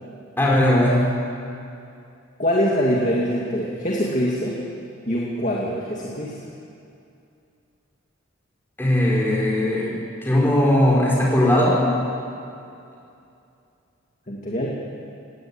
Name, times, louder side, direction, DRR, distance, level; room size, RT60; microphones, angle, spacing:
voice 1, 0.4-1.0 8.8-9.9 10.2-11.9, left 1 dB, 10° left, -4 dB, 5.2 m, -18 dB
voice 2, 2.4-4.6 5.1-6.4 14.3-14.7, equal, 40° left, -3 dB, 2.2 m, -23 dB
19.5 x 17.5 x 9.0 m, 2.6 s
head